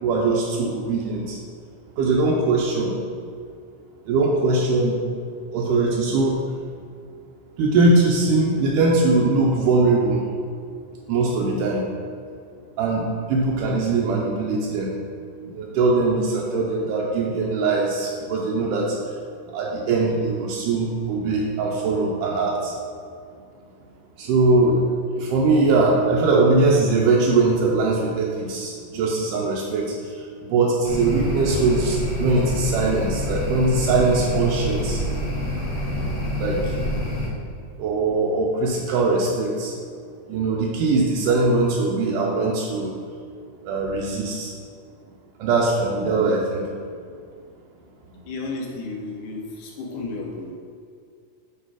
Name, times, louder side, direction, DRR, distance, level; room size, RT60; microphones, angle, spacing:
voice 1, 0.0-1.4 2.0-2.9 4.1-5.0 5.5-6.4 7.6-10.2 11.1-11.8 12.8-14.9 15.4-19.0 19.5-22.7 24.2-30.2 30.5-35.0 36.4-36.6 37.8-39.7 40.3-42.9 43.6-44.5 45.4-46.7, right 3 dB, 85° right, -3 dB, 2.2 m, -21 dB
sound 1, 30.8-37.3, left 1 dB, 60° left, 2.8 m, -26 dB
voice 2, 48.2-50.5, left 3 dB, 75° left, -1 dB, 2.3 m, -32 dB
8.0 x 3.3 x 4.7 m, 2.2 s
omnidirectional pair, 3.7 m